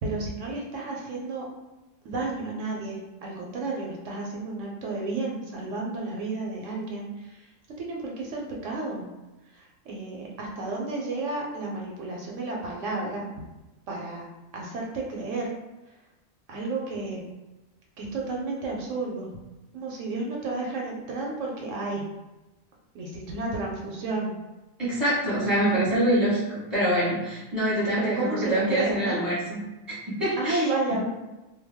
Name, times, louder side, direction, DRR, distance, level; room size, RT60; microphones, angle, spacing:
voice 1, 0.0-1.4 2.0-7.5 7.8-9.0 9.5-13.3 13.9-14.3 14.5-15.5 16.5-17.2 18.0-19.3 19.7-22.0 22.9-24.3 25.5-25.8 28.0-29.2 30.4-31.0, right 3 dB, 75° right, -1 dB, 0.9 m, -32 dB
voice 2, 24.8-31.0, right 1 dB, ahead, -8 dB, 0.8 m, -26 dB
2.2 x 2.2 x 3.3 m, 1.1 s
omnidirectional pair, 1.4 m